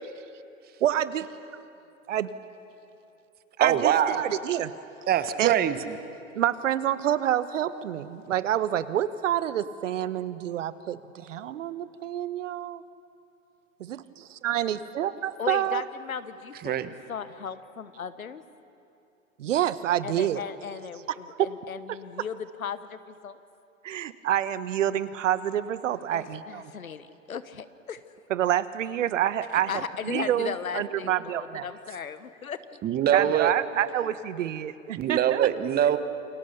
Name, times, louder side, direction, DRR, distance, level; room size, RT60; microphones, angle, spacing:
voice 1, 0.8-1.3 2.1-2.3 3.6-4.7 5.4-5.5 6.3-12.8 13.8-15.8 19.4-20.4 23.8-26.6 28.3-29.8 30.1-31.6 33.1-35.5, right 11 dB, 65° right, 14 dB, 1.1 m, -28 dB
voice 2, 3.6-4.2 5.1-5.9 16.6-16.9 32.8-33.5 34.9-36.0, right 10 dB, 25° right, 12 dB, 1.1 m, -23 dB
voice 3, 15.4-18.4 20.0-23.4 26.1-28.0 29.5-32.6, left 7 dB, 85° left, 13 dB, 1.3 m, -37 dB
28.5 x 24.0 x 6.7 m, 2.7 s
hypercardioid pair, 110°, 41 cm